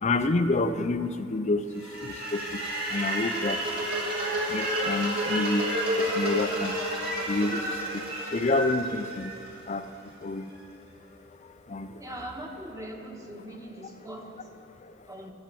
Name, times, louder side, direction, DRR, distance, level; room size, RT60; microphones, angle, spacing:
voice 1, 0.0-4.1 4.4-5.7 6.0-6.9 7.1-12.0 13.3-15.3, left 2 dB, 35° left, 10 dB, 0.5 m, -30 dB
sound 1, 1.8-9.9, right 1 dB, 50° right, 2.8 m, -30 dB
voice 2, 12.0-14.2 15.1-15.3, right 1 dB, 15° right, 1 dB, 1.3 m, -40 dB
13.5 x 7.4 x 7.5 m, 2.6 s
head